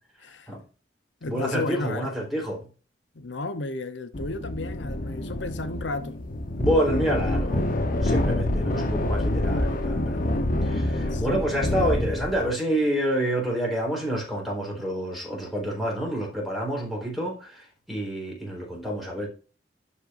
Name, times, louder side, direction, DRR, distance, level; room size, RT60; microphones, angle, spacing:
voice 1, 0.2-0.5 1.2-2.1 3.1-6.2 11.1-11.4, left 2 dB, 85° left, 0.8 m, -33 dB
voice 2, 1.3-2.7 6.6-19.3, equal, ahead, 4.1 m, -28 dB
sound 1, 4.1-12.5, left 1 dB, 50° left, 1.0 m, -27 dB
12.0 x 5.4 x 2.6 m
head